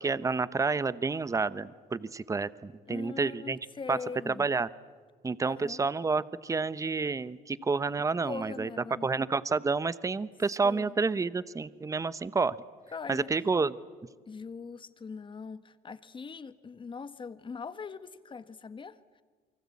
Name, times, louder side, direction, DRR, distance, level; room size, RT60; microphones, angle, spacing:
voice 1, 0.0-3.6 3.9-4.0 4.3-4.7 5.2-8.7 9.0-12.6 13.1-13.8, right 4 dB, 20° right, 17 dB, 0.9 m, -29 dB
voice 2, 2.9-4.5 5.4-5.8 8.2-9.1 10.6-11.0 12.9-13.3 14.3-19.2, left 5 dB, 30° left, 13 dB, 1.4 m, -42 dB
29.0 x 24.0 x 8.5 m, 1.5 s
cardioid pair, 110°, 17 cm